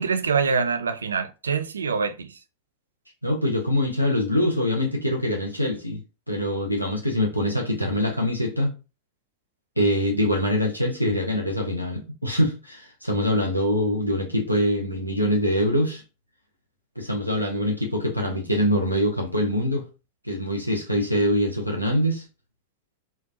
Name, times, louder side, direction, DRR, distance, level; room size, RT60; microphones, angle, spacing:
voice 1, 0.0-2.4, right 5 dB, 70° right, 0.4 m, -25 dB
voice 2, 3.2-6.0 6.3-8.8 9.8-16.0 17.0-19.9 20.2-22.2, equal, 90° left, 0.6 m, -24 dB
3.7 x 2.2 x 2.7 m
figure-of-eight pair, 90°, 0 cm